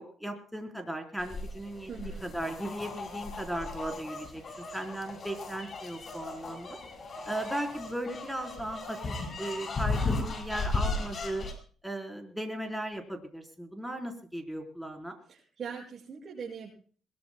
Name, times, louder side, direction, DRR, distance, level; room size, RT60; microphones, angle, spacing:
voice 1, 0.0-1.9 2.2-4.4 4.7-6.8 7.2-11.5 11.8-15.2, right 1 dB, ahead, 3 dB, 4.0 m, -37 dB
sound 1, 1.2-11.5, left 3 dB, 45° left, 5.4 m, -36 dB
voice 2, 1.9-2.2 15.3-16.7, right 6 dB, 50° right, -4 dB, 6.3 m, -41 dB
22.0 x 21.5 x 2.2 m, 0.42 s
cardioid pair, 90°, 0 cm